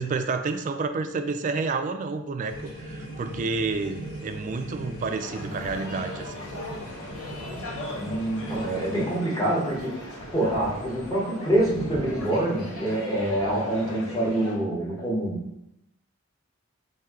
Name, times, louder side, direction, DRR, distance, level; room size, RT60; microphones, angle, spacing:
voice 1, 0.0-6.5, right 4 dB, 35° right, 7 dB, 0.3 m, -30 dB
sound 1, 2.5-9.2, equal, 55° left, 1.4 m, -39 dB
sound 2, 5.0-14.5, left 1 dB, 90° left, 1.4 m, -39 dB
voice 2, 7.9-15.4, right 1 dB, 15° left, -5 dB, 1.1 m, -26 dB
4.4 x 2.7 x 3.7 m, 0.84 s
head